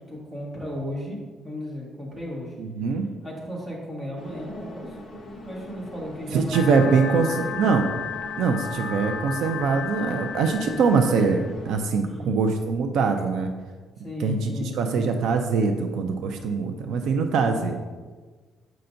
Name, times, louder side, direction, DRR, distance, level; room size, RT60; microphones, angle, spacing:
voice 1, 0.1-1.2 1.4-2.5 3.2-4.9 5.4-7.7 12.0-12.4 14.0-15.2, left 1 dB, 10° right, -5 dB, 1.5 m, -35 dB
voice 2, 2.6-3.1 6.3-7.9 8.4-13.5 14.2-14.5 14.8-17.8, right 5 dB, 75° right, 5 dB, 0.5 m, -23 dB
sound 1, 4.2-11.8, left 1 dB, 30° left, 0.8 m, -42 dB
sound 2, 6.5-11.5, left 7 dB, 85° left, 0.5 m, -34 dB
7.5 x 5.7 x 2.6 m, 1.4 s
cardioid pair, 165°, 0 cm